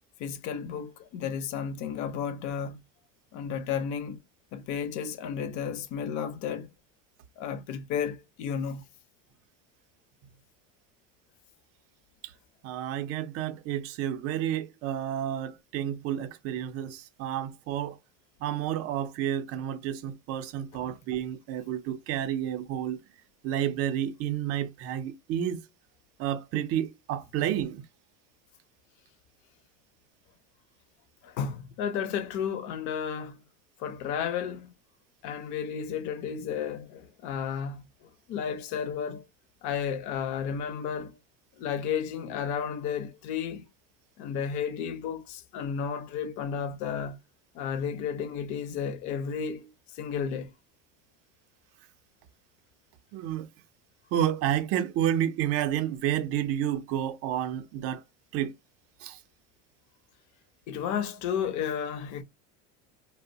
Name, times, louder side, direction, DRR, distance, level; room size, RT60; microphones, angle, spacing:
voice 1, 0.2-2.8 3.3-4.2 4.5-6.7 7.4-8.8 31.2-33.4 33.8-34.7 35.2-39.2 39.6-41.2 41.6-43.7 44.2-47.2 47.5-50.5 60.7-62.2, left 7 dB, 50° left, 0.6 m, -33 dB
voice 2, 12.6-18.0 18.4-23.0 23.4-25.6 26.2-27.8 53.1-53.5 54.1-58.0 58.3-58.5 59.0-59.2, right 11 dB, 40° right, 0.4 m, -30 dB
2.7 x 2.0 x 2.6 m
supercardioid pair, 140°, 37 cm